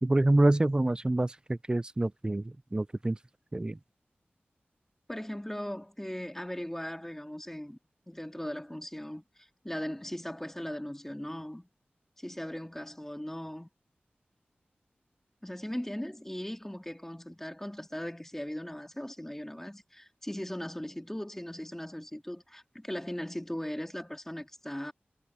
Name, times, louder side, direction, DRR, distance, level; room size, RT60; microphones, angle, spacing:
voice 1, 0.0-3.2 3.5-3.8, right 2 dB, 20° right, 0.5 m, -26 dB
voice 2, 5.1-7.8 8.1-11.7 12.2-13.7 15.4-24.9, equal, 10° left, 2.1 m, -38 dB
wide cardioid pair, 60°, 4 cm